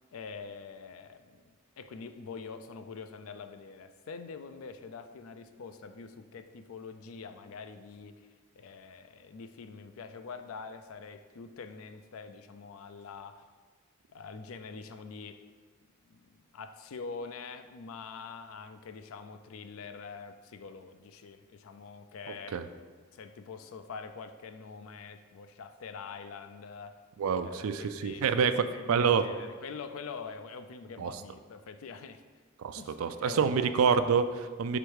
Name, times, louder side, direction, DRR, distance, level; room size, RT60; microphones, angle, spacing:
voice 1, 0.1-1.5 1.8-8.3 8.5-13.5 14.1-15.4 16.1-22.6 23.1-27.0 27.4-32.2 32.8-33.8, left 5 dB, 80° left, 10 dB, 0.4 m, -45 dB
voice 2, 27.2-29.2 31.0-31.1 32.6-34.8, right 6 dB, 90° right, 11 dB, 0.4 m, -27 dB
5.0 x 4.3 x 4.7 m, 1.4 s
head